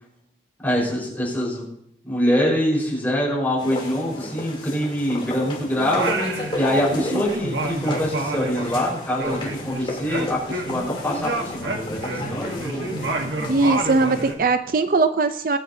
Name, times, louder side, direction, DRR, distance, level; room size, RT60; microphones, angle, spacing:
voice 1, 0.6-1.7 2.0-12.9, equal, 10° left, -4 dB, 4.6 m, -24 dB
sound 1, 3.6-14.3, left 1 dB, 30° left, 3.1 m, -33 dB
Singing, 5.8-7.0 7.3-10.9 11.2-14.4, right 2 dB, 90° right, 1.4 m, -29 dB
voice 2, 13.5-15.6, right 3 dB, 50° right, 9 dB, 0.5 m, -20 dB
22.0 x 10.0 x 2.7 m, 0.76 s
head